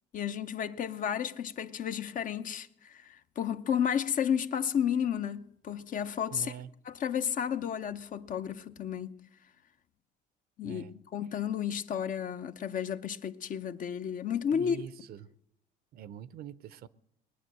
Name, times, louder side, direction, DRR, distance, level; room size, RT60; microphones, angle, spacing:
voice 1, 0.1-6.5 6.9-9.2 10.6-10.8 11.1-14.8, left 8 dB, 50° left, 0.8 m, -32 dB
voice 2, 6.3-6.7 10.6-11.0 14.5-15.3 15.9-16.9, right 9 dB, 65° right, 0.6 m, -44 dB
20.0 x 9.3 x 7.7 m
cardioid pair, 110°, 17 cm